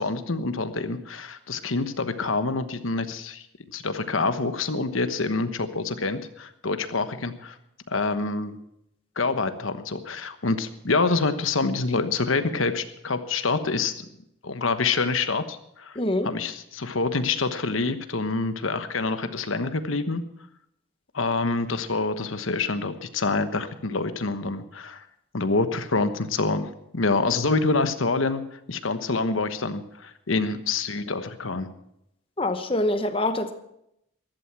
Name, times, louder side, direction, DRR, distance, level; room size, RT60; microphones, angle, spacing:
voice 1, 0.0-3.4 3.7-7.6 7.9-8.6 9.2-13.9 14.4-16.0 16.2-20.2 21.1-25.0 25.3-28.4 28.7-31.7, left 3 dB, 90° left, 1.2 m, -26 dB
voice 2, 16.0-16.3 32.4-33.5, left 1 dB, 25° left, 1.0 m, -25 dB
15.0 x 12.0 x 6.0 m
head